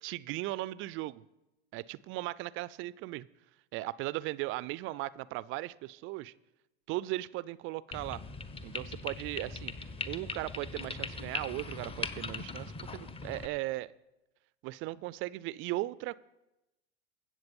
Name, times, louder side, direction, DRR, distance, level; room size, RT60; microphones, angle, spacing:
voice 1, 0.0-1.2 1.7-3.3 3.7-6.3 6.9-8.2 8.6-9.7 10.1-13.9 14.6-16.2, right 18 dB, 40° right, 0.4 m, -37 dB
sound 1, 7.9-13.5, left 4 dB, 15° left, 1.0 m, -40 dB
15.5 x 7.6 x 5.3 m
hypercardioid pair, 85°, 33 cm